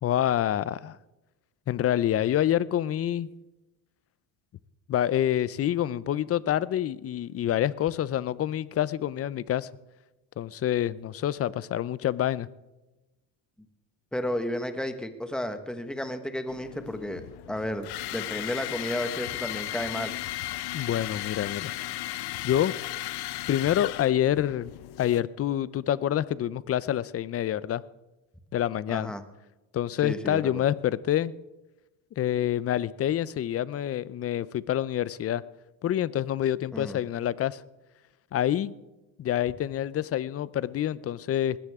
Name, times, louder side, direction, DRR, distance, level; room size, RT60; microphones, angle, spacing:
voice 1, 0.0-1.0 1.7-3.3 4.9-9.7 10.4-12.5 20.7-21.7 22.4-22.8 23.5-24.7 25.0-27.8 28.5-29.1 29.7-31.3 32.2-35.4 35.8-37.6 38.3-38.7 39.2-41.6, left 11 dB, 35° left, 19 dB, 0.6 m, -27 dB
voice 2, 14.1-17.2 17.5-20.1 28.9-29.2 30.0-30.6 36.7-37.0, left 1 dB, ahead, 8 dB, 1.4 m, -32 dB
sound 1, 16.5-25.2, left 16 dB, 65° left, 0.8 m, -36 dB
20.0 x 16.0 x 3.6 m, 1.0 s
cardioid pair, 105°, 41 cm